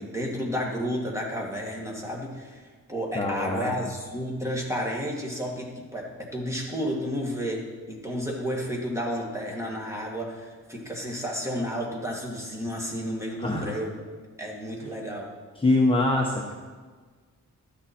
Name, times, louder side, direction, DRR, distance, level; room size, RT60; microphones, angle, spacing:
voice 1, 0.0-14.0 14.4-15.3, equal, 10° right, -2 dB, 1.9 m, -32 dB
voice 2, 3.1-3.7 13.4-13.8 15.6-16.5, left 2 dB, 15° left, -2 dB, 1.0 m, -24 dB
12.0 x 9.8 x 4.3 m, 1.5 s
wide cardioid pair, 155°, 32 cm